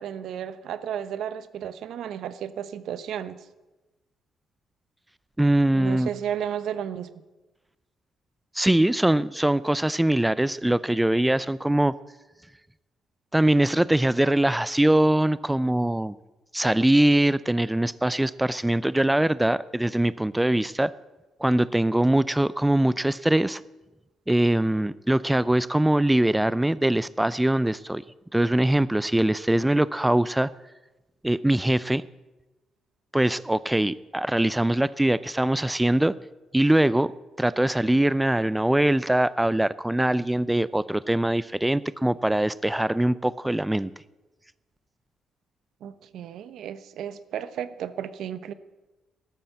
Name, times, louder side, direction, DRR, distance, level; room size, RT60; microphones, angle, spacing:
voice 1, 0.0-3.4 5.7-7.1 45.8-48.5, right 9 dB, 75° right, 14 dB, 1.0 m, -33 dB
voice 2, 5.4-6.1 8.5-11.9 13.3-16.1 16.5-20.9 21.4-23.6 24.3-28.0 28.3-30.5 31.2-32.0 33.1-36.1 36.5-37.1 37.4-43.9, right 1 dB, 10° right, 18 dB, 0.4 m, -22 dB
13.5 x 11.5 x 8.0 m, 1.1 s
cardioid pair, 90°, 0 cm